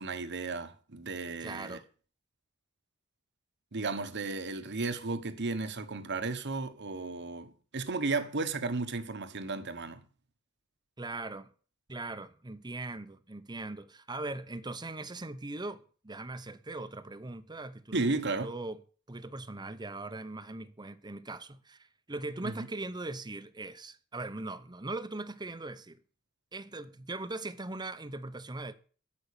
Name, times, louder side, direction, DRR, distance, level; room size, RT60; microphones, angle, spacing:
voice 1, 0.0-1.8 3.7-10.0 17.9-18.5 22.4-22.7, right 3 dB, 55° right, 1.3 m, -34 dB
voice 2, 1.4-1.8 11.0-11.5 11.9-18.1 18.4-18.8 19.1-26.0 26.5-28.7, right 2 dB, 20° right, 0.9 m, -40 dB
13.5 x 5.5 x 8.5 m
head